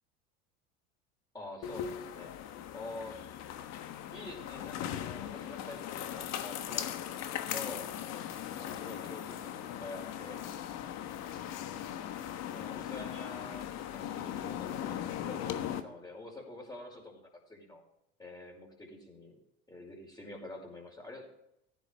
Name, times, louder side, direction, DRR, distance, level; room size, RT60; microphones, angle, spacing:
voice 1, 1.3-2.4 2.7-3.2 4.1-7.9 8.5-10.4 12.5-17.8 18.2-19.4 19.7-21.3, left 2 dB, 10° left, 0 dB, 5.2 m, -47 dB
sound 1, 1.6-15.8, left 10 dB, 55° left, 1.2 m, -39 dB
15.0 x 10.5 x 3.5 m, 0.81 s
hypercardioid pair, 85°, 33 cm